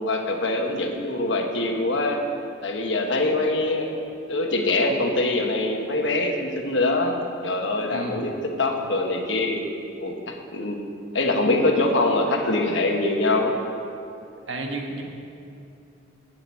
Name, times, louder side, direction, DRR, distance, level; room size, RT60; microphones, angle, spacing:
voice 1, 0.0-2.2 2.6-3.9 4.3-8.3 8.6-9.6 10.0-10.8 11.1-13.5, left 2 dB, 75° left, 2 dB, 1.2 m, -24 dB
voice 2, 7.9-8.2 14.5-15.0, right 2 dB, 85° right, 1 dB, 1.4 m, -31 dB
7.8 x 7.7 x 8.4 m, 2.6 s
head